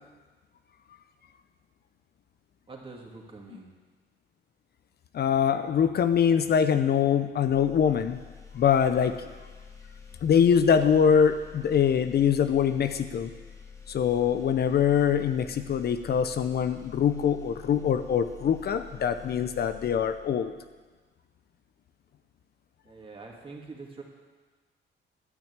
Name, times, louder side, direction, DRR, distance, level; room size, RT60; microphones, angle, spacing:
voice 1, 2.7-3.7 22.8-24.0, right 3 dB, 25° right, -1 dB, 2.6 m, -44 dB
voice 2, 5.1-8.2 8.5-9.2 10.2-13.3 13.9-20.5, left 7 dB, 55° left, 10 dB, 0.6 m, -23 dB
sound 1, 7.4-20.8, left 6 dB, 15° left, 2.3 m, -48 dB
12.0 x 6.1 x 8.9 m, 1.4 s
cardioid pair, 90°, 20 cm